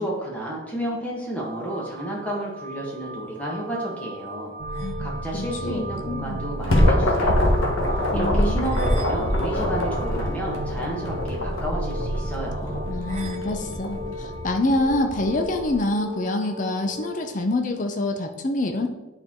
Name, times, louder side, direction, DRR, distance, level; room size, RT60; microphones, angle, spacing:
voice 1, 0.0-4.5 4.8-7.6 7.9-12.8, right 1 dB, 5° left, -4 dB, 1.5 m, -31 dB
sound 1, 1.4-17.3, left 1 dB, 30° right, 0.5 m, -37 dB
sound 2, 4.6-12.9, right 2 dB, 85° right, 0.8 m, -34 dB
voice 2, 5.3-6.4 8.1-8.6 12.9-18.9, left 2 dB, 40° left, 4 dB, 0.6 m, -26 dB
sound 3, 6.3-15.7, left 1 dB, 70° left, 1.2 m, -24 dB
9.1 x 4.5 x 3.7 m, 1.1 s
head